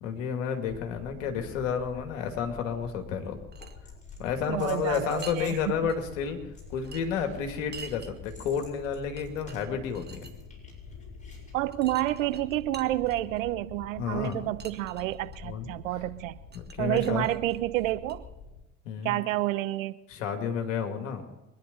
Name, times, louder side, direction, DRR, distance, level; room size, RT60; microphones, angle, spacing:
voice 1, 0.0-3.4 4.2-6.4 6.7-10.3 14.0-14.4 15.4-15.7 16.5-17.3 18.9-19.2 20.1-21.3, left 7 dB, 70° left, 5 dB, 2.4 m, -31 dB
sound 1, 0.7-18.6, left 5 dB, 40° left, 4.0 m, -47 dB
sound 2, 3.3-3.8 4.9-5.5 5.9-6.0 6.8-8.1 8.8-8.9 9.2-10.3 11.7-13.4 14.2-15.4 16.5-18.2, right 6 dB, 25° right, 1.5 m, -47 dB
sound 3, 3.6-5.7 6.5-11.5 12.2-12.6 14.2-14.3, left 2 dB, 20° left, 6.4 m, -54 dB
voice 2, 4.5-5.9 11.5-16.4 16.8-18.3 19.0-19.9, right 16 dB, 75° right, 14 dB, 0.9 m, -29 dB
23.5 x 10.5 x 5.3 m, 0.98 s
hypercardioid pair, 65°, 39 cm